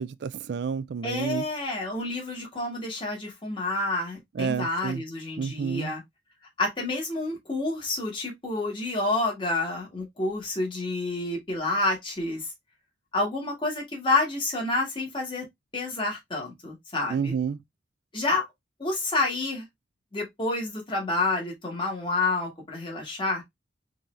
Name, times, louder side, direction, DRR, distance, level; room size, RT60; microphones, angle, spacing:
voice 1, 0.0-1.5 4.3-5.0 5.4-6.0 17.1-17.6, right 6 dB, 70° right, 0.4 m, -30 dB
voice 2, 1.0-6.0 6.6-12.4 13.1-15.4 15.7-17.3 18.1-18.4 18.8-19.6 20.1-23.4, left 2 dB, 30° left, 1.5 m, -29 dB
3.8 x 2.7 x 3.1 m
head